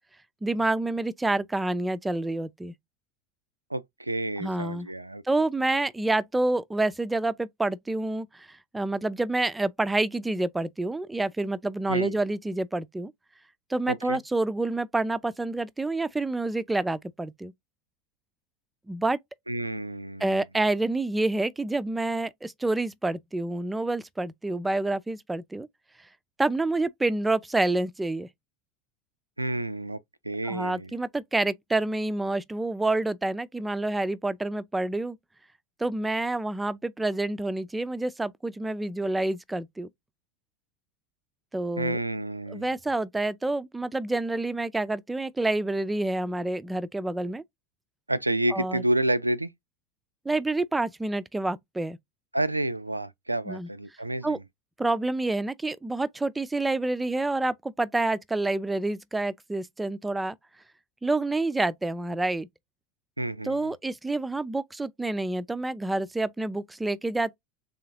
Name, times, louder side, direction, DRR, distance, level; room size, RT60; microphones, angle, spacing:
voice 1, 0.4-2.7 4.4-4.9 5.3-13.1 13.7-17.5 18.9-19.2 20.2-25.7 26.4-28.3 30.5-35.2 35.8-39.9 41.5-42.0 42.5-47.4 48.5-48.8 50.3-52.0 53.5-53.7 54.2-54.4 54.8-60.4 61.0-62.5 63.4-67.4, right 2 dB, 10° right, 0.4 m, -28 dB
voice 2, 3.7-5.2 11.9-12.2 13.9-14.2 19.5-20.4 29.4-30.0 30.2-30.9 41.8-42.7 48.1-49.5 52.3-54.4 63.2-63.7, right 1 dB, 85° right, 0.3 m, -29 dB
3.8 x 3.4 x 2.7 m
figure-of-eight pair, 80°, 0 cm